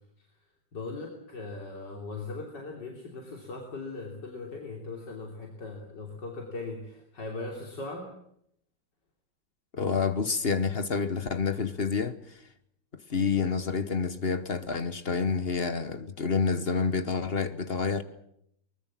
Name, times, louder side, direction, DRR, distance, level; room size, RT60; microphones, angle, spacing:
voice 1, 0.7-8.1, left 3 dB, 70° left, 3.9 m, -39 dB
voice 2, 9.7-12.4 13.1-18.0, left 5 dB, 35° left, 1.2 m, -28 dB
24.0 x 20.5 x 7.5 m
omnidirectional pair, 2.0 m